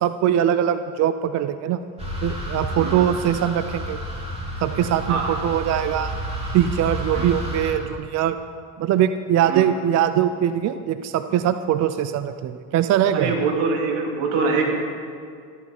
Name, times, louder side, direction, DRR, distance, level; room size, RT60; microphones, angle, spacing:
voice 1, 0.0-1.8 2.2-4.0 4.6-6.1 6.5-8.4 8.8-13.3, right 10 dB, 35° right, 11 dB, 0.5 m, -22 dB
sound 1, 2.0-7.7, right 1 dB, 10° right, 3.2 m, -30 dB
voice 2, 2.8-3.1 5.1-5.4 7.1-7.3 9.5-9.6 13.1-14.6, right 4 dB, 70° right, 1 dB, 2.8 m, -24 dB
13.5 x 11.0 x 5.3 m, 2.2 s
supercardioid pair, 110°, 50 cm